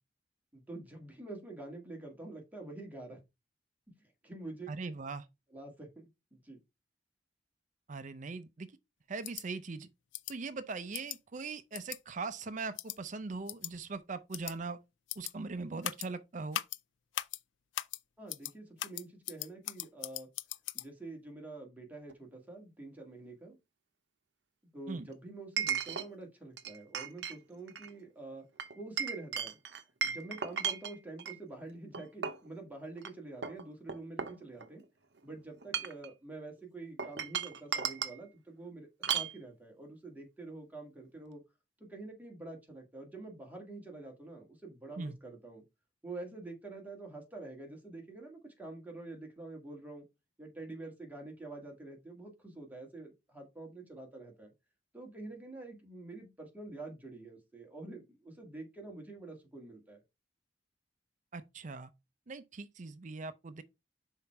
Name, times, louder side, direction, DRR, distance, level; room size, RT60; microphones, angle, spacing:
voice 1, 0.5-3.2 4.2-4.7 5.5-6.6 18.2-20.3 20.7-23.6 24.7-28.4 28.8-29.6 30.0-34.8 35.2-41.4 41.8-45.6 46.0-50.0 50.4-54.5 54.9-60.0, right 2 dB, 10° right, 2.0 m, -47 dB
voice 2, 4.7-5.3 7.9-8.7 9.1-9.9 10.3-14.8 15.2-16.6 24.9-25.1 45.0-45.2 61.3-61.9 62.3-63.6, right 4 dB, 40° right, 0.5 m, -40 dB
Mouse clicks sound, 9.2-9.4 10.1-10.3 10.9-11.2 11.7-12.0 12.8-13.0 13.5-13.7 14.3-14.5 15.1-15.3 15.8-16.1 16.5-16.8 17.1-17.4 17.7-18.0 18.3-18.5 18.8-20.9, left 13 dB, 80° left, 0.4 m, -38 dB
Chink clink, 22.1-22.2 25.6-26.1 26.6-27.4 27.7-27.9 28.6-31.4 31.9-32.5 33.0-33.1 33.4-34.8 35.5-36.1 37.0-38.2 39.0-39.4, right 7 dB, 65° right, 0.8 m, -35 dB
5.6 x 4.4 x 4.6 m
head